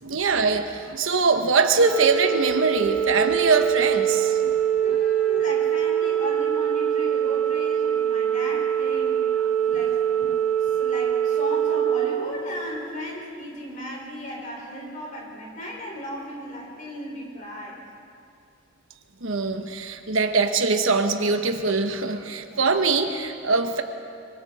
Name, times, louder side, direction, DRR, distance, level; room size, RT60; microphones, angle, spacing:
voice 1, 0.0-4.6 19.2-23.8, right 4 dB, 75° right, 6 dB, 1.2 m, -22 dB
Organ, 1.8-12.9, right 9 dB, 5° left, 1.8 m, -24 dB
voice 2, 4.8-9.3 9.7-10.3 10.6-17.8, equal, 40° left, -3 dB, 5.3 m, -36 dB
25.0 x 24.5 x 4.3 m, 2.5 s
head